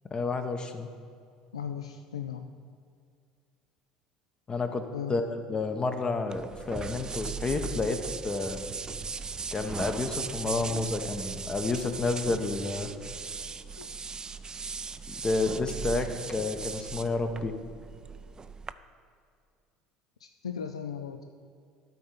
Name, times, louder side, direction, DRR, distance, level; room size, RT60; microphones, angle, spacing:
voice 1, 0.1-0.9 4.5-8.0 8.2-8.6 9.5-12.9 15.1-17.5, left 3 dB, 30° left, 7 dB, 0.9 m, -30 dB
voice 2, 1.5-2.5 4.9-5.1 5.5-5.6 13.8-13.9 20.2-21.2, left 8 dB, 85° left, 7 dB, 0.3 m, -37 dB
sound 1, 6.3-18.7, right 5 dB, 25° right, 0.4 m, -38 dB
12.5 x 4.4 x 5.3 m, 2.3 s
figure-of-eight pair, 65°, 3 cm